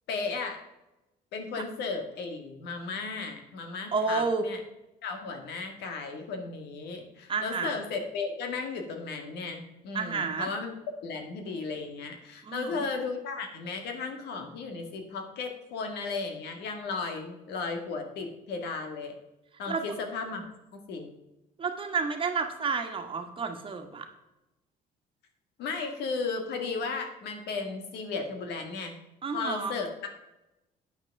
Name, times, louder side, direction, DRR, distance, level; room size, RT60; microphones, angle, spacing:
voice 1, 0.1-0.6 1.3-4.6 5.0-10.7 11.0-19.1 19.6-20.5 20.9-21.1 25.6-29.0 29.3-30.1, left 4 dB, 80° left, 5 dB, 1.9 m, -35 dB
voice 2, 3.9-4.4 7.3-7.8 9.9-10.5 12.4-12.8 19.7-19.8 21.6-24.1 29.2-29.7, right 5 dB, 30° right, 5 dB, 1.5 m, -30 dB
9.1 x 6.0 x 5.9 m, 0.96 s
cardioid pair, 110°, 17 cm